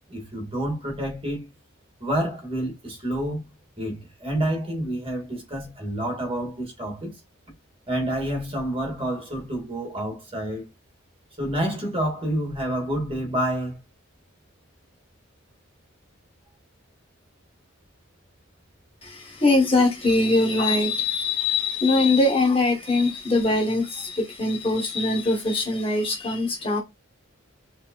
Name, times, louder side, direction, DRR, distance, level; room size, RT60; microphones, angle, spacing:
voice 1, 0.1-1.5 2.0-3.5 3.8-7.2 7.9-10.6 11.4-13.8, right 1 dB, 25° right, 2.2 m, -28 dB
voice 2, 19.0-26.8, left 2 dB, 25° left, 1.3 m, -22 dB
5.0 x 3.6 x 2.5 m
head